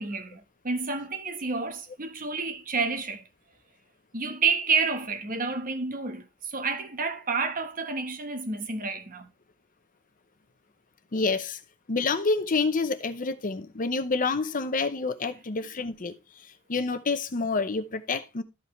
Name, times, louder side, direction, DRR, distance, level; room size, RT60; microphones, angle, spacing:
voice 1, 0.0-3.2 4.1-9.3, right 4 dB, 40° right, 1.2 m, -29 dB
voice 2, 11.1-11.6 11.9-18.4, left 4 dB, 40° left, 0.8 m, -28 dB
13.0 x 5.4 x 3.2 m
head